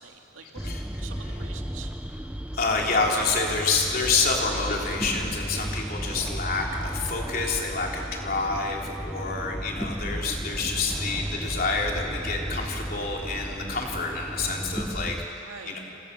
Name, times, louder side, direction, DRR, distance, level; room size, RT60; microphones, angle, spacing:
voice 1, 0.0-1.9 5.9-6.2 8.5-8.8 10.8-11.1 15.4-15.8, right 5 dB, 80° right, 2 dB, 2.5 m, -46 dB
sound 1, 0.6-15.3, equal, 5° right, 0.5 m, -34 dB
voice 2, 2.5-15.8, left 3 dB, 45° left, -1 dB, 3.6 m, -28 dB
29.0 x 27.0 x 6.9 m, 2.9 s
head